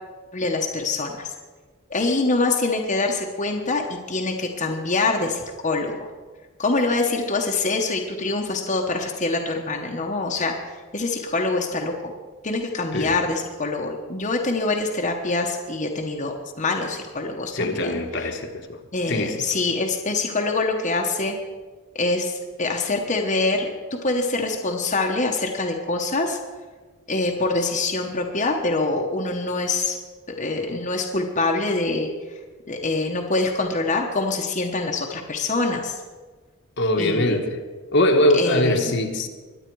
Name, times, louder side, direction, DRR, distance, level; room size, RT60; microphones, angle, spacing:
voice 1, 0.3-1.3 1.9-6.1 6.6-12.1 12.4-18.3 18.9-21.3 21.9-26.4 27.1-30.0 30.3-32.4 32.7-36.0 37.0-37.4 38.3-38.9, left 3 dB, 35° left, 1 dB, 1.1 m, -25 dB
voice 2, 17.5-18.8 19.1-19.4 36.8-37.6 37.9-39.3, left 1 dB, 55° left, 5 dB, 1.3 m, -22 dB
22.0 x 9.0 x 4.7 m, 1.4 s
head